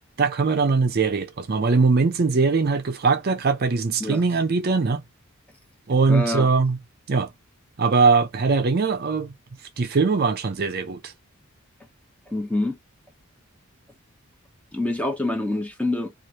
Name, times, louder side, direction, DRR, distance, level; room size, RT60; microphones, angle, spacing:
voice 1, 0.2-5.0 5.9-6.8 7.1-7.3 7.8-9.3 9.8-11.1, right 4 dB, 45° right, 0.5 m, -21 dB
voice 2, 6.1-6.5 12.3-12.8 14.7-16.1, left 2 dB, 5° left, 0.6 m, -26 dB
3.1 x 2.4 x 2.8 m
head